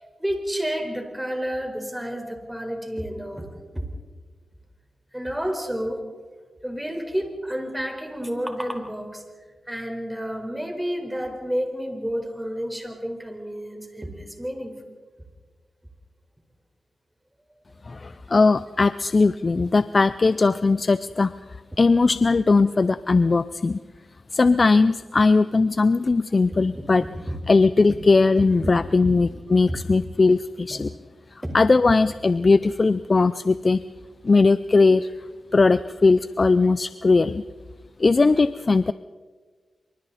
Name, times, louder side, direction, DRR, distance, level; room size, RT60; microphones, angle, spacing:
voice 1, 0.0-3.8 5.1-6.1 6.6-9.2 9.7-14.8 26.5-26.8 27.3-27.4 28.6-28.7 29.0-29.1 29.7-29.8 30.7-30.8 31.4-31.6, equal, 10° right, 4 dB, 4.5 m, -30 dB
voice 2, 17.9-21.3 21.8-23.8 24.3-27.0 27.5-30.9 31.5-33.8 34.2-35.1 35.5-37.4 38.0-38.9, left 3 dB, 45° left, 14 dB, 0.5 m, -19 dB
26.0 x 24.5 x 4.2 m, 1.5 s
cardioid pair, 55°, 0 cm